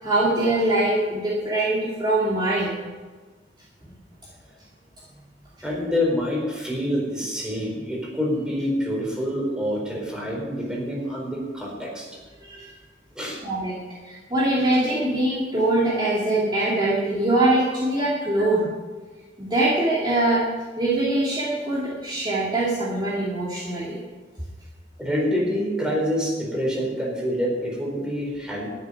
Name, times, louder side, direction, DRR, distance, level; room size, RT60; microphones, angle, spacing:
voice 1, 0.0-2.8 12.4-12.7 13.4-13.8 14.0-18.7 19.4-20.4 20.8-24.0, right 2 dB, 25° right, -7 dB, 2.5 m, -23 dB
voice 2, 5.6-12.1 13.2-13.4 25.0-28.7, equal, 5° right, -3 dB, 4.2 m, -26 dB
13.0 x 7.0 x 9.7 m, 1.4 s
head